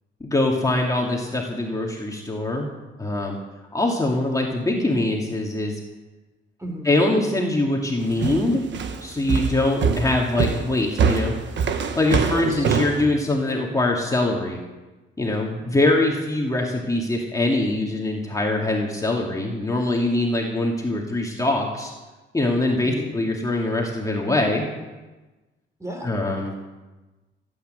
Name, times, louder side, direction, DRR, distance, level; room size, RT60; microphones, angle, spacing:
voice 1, 0.2-2.7 3.0-3.4 3.7-5.8 6.8-8.6 9.0-11.3 12.0-14.6 15.2-21.9 22.3-24.6 26.0-26.5, left 2 dB, 15° left, -1 dB, 2.5 m, -23 dB
sound 1, 8.2-13.0, right 6 dB, 65° right, 1.4 m, -23 dB
voice 2, 12.3-12.6 22.8-23.1 25.8-26.1, right 1 dB, 15° right, 3 dB, 3.4 m, -33 dB
16.5 x 9.0 x 8.0 m, 1.2 s
cardioid pair, 90°, 20 cm